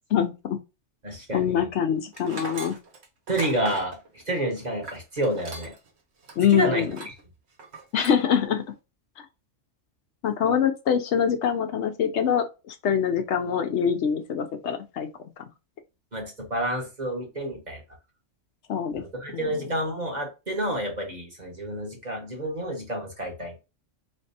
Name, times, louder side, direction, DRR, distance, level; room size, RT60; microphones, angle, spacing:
voice 1, 0.1-0.6 1.3-2.8 6.4-6.9 7.9-8.6 10.2-15.1 18.7-19.0 19.3-19.5, left 8 dB, 70° left, 0.9 m, -24 dB
voice 2, 1.0-1.7 3.3-4.0 4.3-5.7 6.5-7.1 16.1-17.8 18.9-23.7, right 1 dB, 35° right, 1.3 m, -29 dB
Tools, 2.1-5.9 6.2-6.4 6.9-7.2 7.6-8.2, right 4 dB, 65° right, 1.2 m, -39 dB
4.3 x 3.2 x 2.7 m
omnidirectional pair, 1.3 m